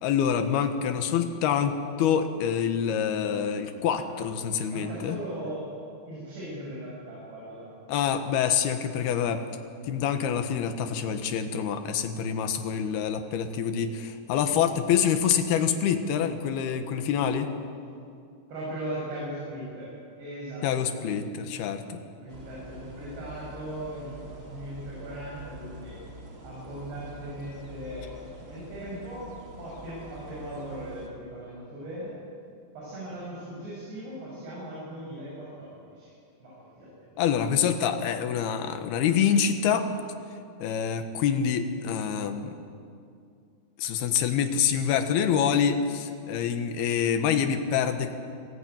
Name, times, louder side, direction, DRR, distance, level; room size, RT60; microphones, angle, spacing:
voice 1, 0.0-5.2 7.9-9.4 9.9-17.5 20.6-22.0 37.2-39.9 40.6-42.6 43.8-48.1, left 8 dB, 75° left, 8 dB, 3.1 m, -26 dB
voice 2, 4.7-5.7 6.1-7.8 18.5-21.2 22.2-26.0 26.4-28.1 28.5-29.3 29.6-32.1 32.7-36.1 36.4-36.9 46.2-46.4, right 1 dB, 85° right, -6 dB, 8.5 m, -38 dB
sound 1, 22.3-31.1, right 1 dB, 25° right, 1.9 m, -45 dB
26.5 x 16.0 x 9.1 m, 2.4 s
omnidirectional pair, 4.8 m